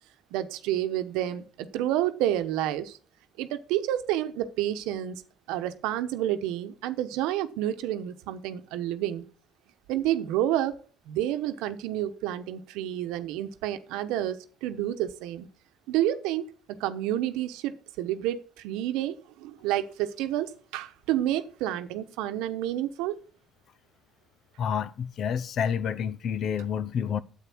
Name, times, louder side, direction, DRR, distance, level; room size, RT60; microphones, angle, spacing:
voice 1, 0.3-3.0 3.4-5.2 5.5-9.2 9.9-10.8 11.1-15.5 15.9-23.2, right 12 dB, 90° right, 1.0 m, -29 dB
voice 2, 24.6-27.2, left 7 dB, 60° left, 0.7 m, -29 dB
9.3 x 8.1 x 6.1 m
supercardioid pair, 85°, 0 cm